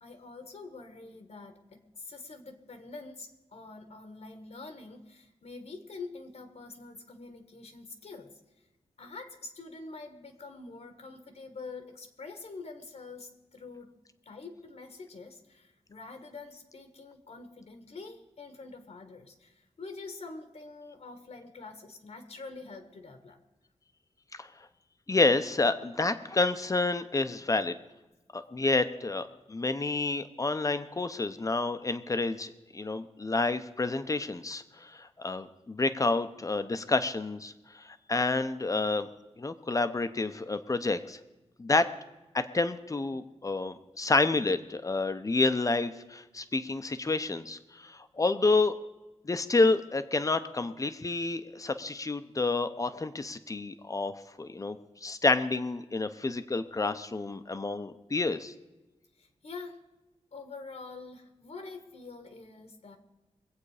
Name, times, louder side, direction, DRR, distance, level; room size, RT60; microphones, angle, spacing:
voice 1, 0.0-8.7 9.0-14.0 14.2-23.4 59.2-59.8 60.3-63.0, left 3 dB, 70° left, 6 dB, 1.5 m, -46 dB
voice 2, 25.1-27.7 28.3-37.5 37.8-39.1 39.4-41.2 41.6-41.9 42.3-48.7 49.2-58.5, left 3 dB, 30° left, 10 dB, 0.8 m, -29 dB
23.0 x 8.3 x 5.0 m, 1.1 s
wide cardioid pair, 125°, 12 cm